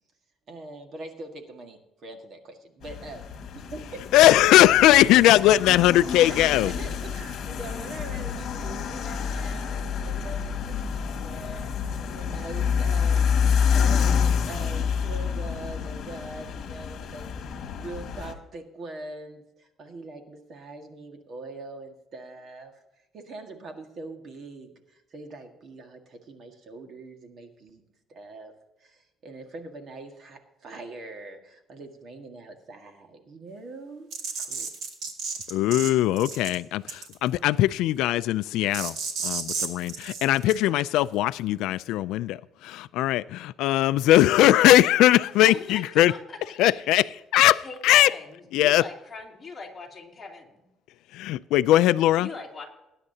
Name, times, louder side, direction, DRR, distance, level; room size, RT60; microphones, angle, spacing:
voice 1, 0.5-3.3 3.5-4.0 6.1-22.8 23.1-27.8 28.1-34.1 34.4-34.7, right 2 dB, 45° right, 1.7 m, -43 dB
sound 1, 2.8-18.3, left 7 dB, 55° left, 1.7 m, -28 dB
voice 2, 4.1-6.7 35.5-38.9 39.2-42.4 42.6-46.1 46.6-48.1 48.5-48.8 51.1-52.3, left 14 dB, 85° left, 0.3 m, -20 dB
sound 2, 34.1-35.9 36.2-36.6 36.9-37.3 38.7-40.5, right 5 dB, 70° right, 2.3 m, -32 dB
voice 3, 45.5-46.4 47.6-50.6 52.2-52.6, left 4 dB, 20° left, 2.9 m, -40 dB
20.0 x 9.9 x 2.8 m
cardioid pair, 155°, 0 cm